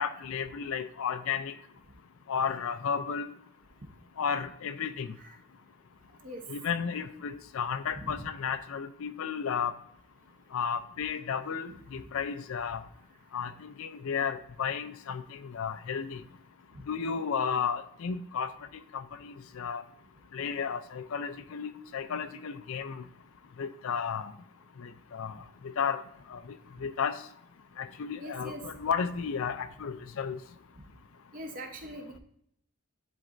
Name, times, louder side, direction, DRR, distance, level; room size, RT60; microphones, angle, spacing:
voice 1, 0.0-1.5 2.3-3.3 4.2-5.2 6.5-9.7 10.5-12.8 13.3-16.2 16.9-19.8 20.3-23.0 23.6-24.3 24.8-25.3 25.8-26.0 26.3-26.4 26.8-27.2 27.8-30.4, left 6 dB, 70° left, 12 dB, 0.4 m, -33 dB
voice 2, 8.0-8.3 12.0-12.1 28.2-28.6 31.3-32.2, right 1 dB, 40° right, 3 dB, 0.8 m, -42 dB
10.5 x 4.0 x 2.5 m, 0.72 s
head